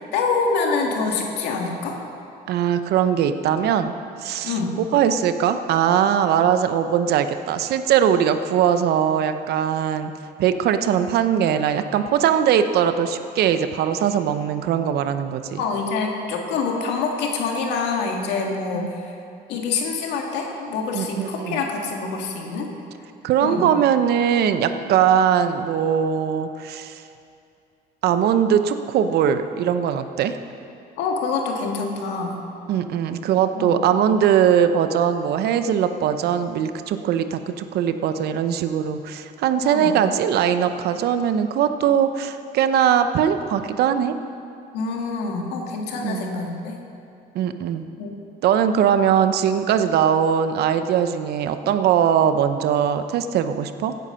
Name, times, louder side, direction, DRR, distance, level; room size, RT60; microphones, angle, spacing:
voice 1, 0.1-2.0 4.4-4.8 15.6-19.1 19.5-22.7 23.4-23.7 31.0-32.4 33.5-33.8 39.6-40.0 44.7-46.8 48.0-48.1, left 4 dB, 90° left, 1 dB, 1.9 m, -26 dB
voice 2, 2.5-3.9 4.2-10.1 10.4-15.6 18.7-18.9 20.9-21.6 23.2-27.0 28.0-30.4 32.7-44.2 46.0-46.3 47.3-47.8 48.4-54.0, right 8 dB, 70° right, 10 dB, 0.8 m, -20 dB
16.0 x 9.4 x 5.7 m, 2.5 s
cardioid pair, 110°, 17 cm